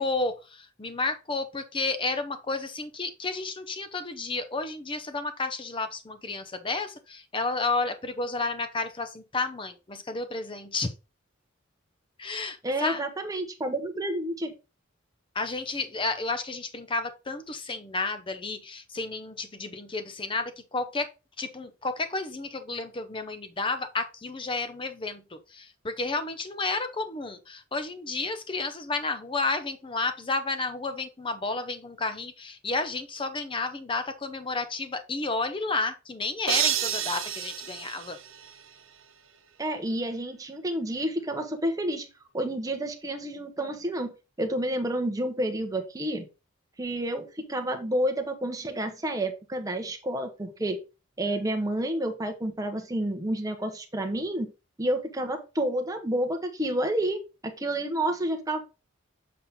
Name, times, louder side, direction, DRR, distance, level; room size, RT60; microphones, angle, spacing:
voice 1, 0.0-10.9 12.2-13.0 15.3-21.1 21.4-38.2, left 3 dB, 25° left, 0.7 m, -31 dB
voice 2, 12.6-14.5 39.6-42.1 42.3-44.1 44.4-46.2 46.8-50.8 51.2-54.5 54.8-58.6, right 1 dB, 15° right, 1.0 m, -29 dB
sound 1, 36.5-38.8, right 10 dB, 80° right, 0.9 m, -30 dB
7.3 x 4.2 x 3.6 m
head